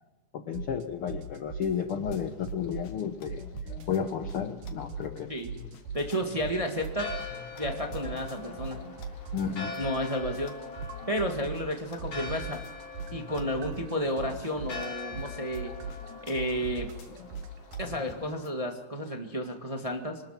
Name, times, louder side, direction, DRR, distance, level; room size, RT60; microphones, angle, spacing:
voice 1, 0.3-3.4 3.9-5.3 9.3-9.7, left 7 dB, 65° left, 7 dB, 1.4 m, -32 dB
sound 1, 0.5-0.8 1.1-3.0 3.3-5.2 5.4-7.4 7.6-11.7 12.0-17.9, right 5 dB, 70° right, 2.6 m, -39 dB
sound 2, 1.9-18.6, left 6 dB, 80° left, 3.3 m, -49 dB
voice 2, 5.9-7.1 7.6-8.8 9.8-10.6 11.1-12.6 13.1-15.7 16.3-16.9 17.8-20.2, equal, 15° right, 3 dB, 1.4 m, -32 dB
Church bell, 6.8-18.4, left 4 dB, 45° left, 5.6 m, -43 dB
25.0 x 20.0 x 5.9 m, 1.1 s
omnidirectional pair, 3.6 m